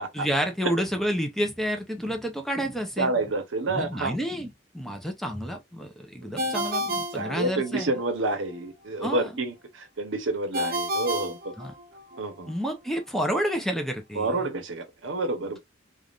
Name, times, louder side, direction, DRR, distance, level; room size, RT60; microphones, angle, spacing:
voice 1, 0.1-3.1 3.7-7.9 9.0-9.2 11.6-11.7 12.5-14.3, equal, ahead, 0.5 m, -29 dB
voice 2, 3.0-4.2 6.2-6.7 7.1-11.5 12.2-12.5 14.1-15.6, right 2 dB, 90° right, 0.8 m, -29 dB
Ringtone, 6.4-8.0 10.5-12.2, equal, 50° right, 0.6 m, -30 dB
3.4 x 2.4 x 2.4 m
head